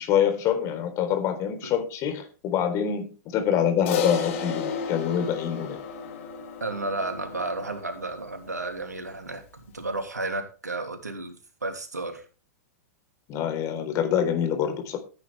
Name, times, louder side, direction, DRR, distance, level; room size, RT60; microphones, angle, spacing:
voice 1, 0.0-5.8 13.3-15.0, left 9 dB, 35° left, 4.1 m, -26 dB
Crash cymbal, 3.9-8.4, left 6 dB, 50° left, 3.1 m, -32 dB
voice 2, 6.6-12.2, right 2 dB, 85° right, 2.8 m, -33 dB
15.5 x 9.4 x 3.5 m
figure-of-eight pair, 105°, 9 cm